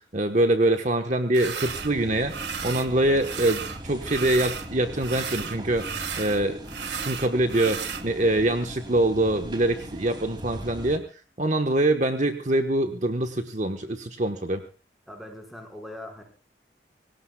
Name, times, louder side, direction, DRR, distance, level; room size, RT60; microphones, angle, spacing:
voice 1, 0.0-6.6 6.9-11.0 11.4-14.6, right 1 dB, 45° right, 6 dB, 1.3 m, -24 dB
sound 1, 1.3-1.9 2.3-2.9 3.2-4.7 5.0-8.0, right 6 dB, 80° right, 1.8 m, -34 dB
sound 2, 1.7-11.0, equal, 25° right, 2.8 m, -40 dB
voice 2, 15.1-16.2, left 1 dB, ahead, 2 dB, 5.0 m, -41 dB
25.5 x 18.0 x 2.4 m, 0.37 s
head